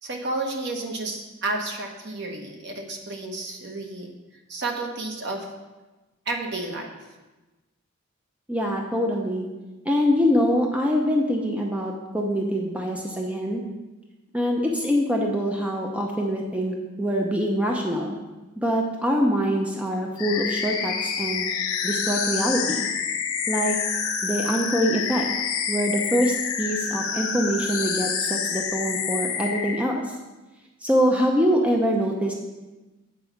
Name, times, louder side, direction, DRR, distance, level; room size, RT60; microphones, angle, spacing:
voice 1, 0.0-4.1 4.5-5.5 6.3-6.9, right 2 dB, 55° right, 2 dB, 1.2 m, -31 dB
voice 2, 8.5-9.5 9.8-13.6 14.3-18.2 18.6-21.5 21.8-22.9 23.5-23.8 24.2-25.3 25.7-30.0 30.8-32.3, equal, 5° right, 0 dB, 0.7 m, -24 dB
sound 1, 20.2-29.8, left 6 dB, 90° left, 1.1 m, -28 dB
8.0 x 4.7 x 7.1 m, 1.1 s
head